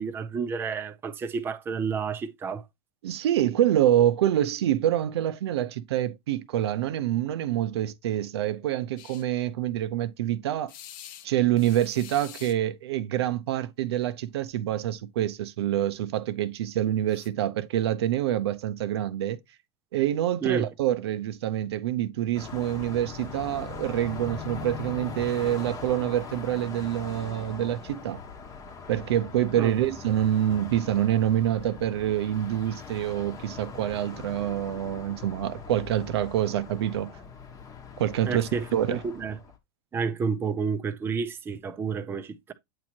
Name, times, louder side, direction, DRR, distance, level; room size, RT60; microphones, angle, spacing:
voice 1, 0.0-2.6 20.4-20.7 29.6-29.7 38.2-39.4 39.9-42.5, right 5 dB, 15° right, 0.6 m, -30 dB
voice 2, 3.0-10.7 11.2-19.4 19.9-28.2 28.9-37.1 38.0-39.0, right 12 dB, 80° right, 0.7 m, -26 dB
sound 1, 9.0-9.2 10.7-11.3 11.6-12.6 13.9-14.1 14.4-14.6 17.1-17.3, left 11 dB, 55° left, 0.8 m, -46 dB
Car passing by, 22.3-39.6, left 6 dB, 25° left, 1.0 m, -41 dB
8.5 x 3.0 x 4.3 m
supercardioid pair, 135°, 13 cm